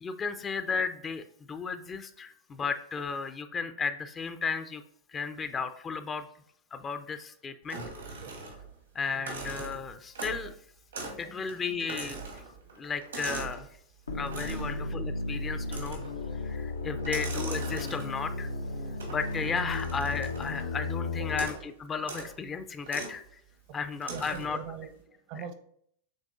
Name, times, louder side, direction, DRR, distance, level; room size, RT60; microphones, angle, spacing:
voice 1, 0.0-4.8 5.1-6.2 6.7-7.8 8.9-10.5 11.2-12.4 12.8-13.7 14.1-16.0 16.3-18.5 19.1-21.5 21.8-23.4 23.7-24.6, left 5 dB, 25° left, 10 dB, 0.4 m, -34 dB
sound 1, 7.7-8.8 9.1-10.5 10.9-11.2 11.5-13.6 14.3-14.8 15.7-16.2 17.0-18.3 19.0-20.7 21.3-21.7 22.0-22.3 22.9-23.2 24.0-24.6, right 3 dB, 85° right, 1.5 m, -40 dB
voice 2, 11.1-11.5 14.5-14.7 17.0-17.2 21.3-21.4 23.7-25.5, right 7 dB, 50° right, 9 dB, 0.7 m, -44 dB
sound 2, 14.1-21.4, left 3 dB, 85° left, 0.5 m, -34 dB
6.4 x 3.5 x 2.4 m, 0.66 s
hypercardioid pair, 95°, 0 cm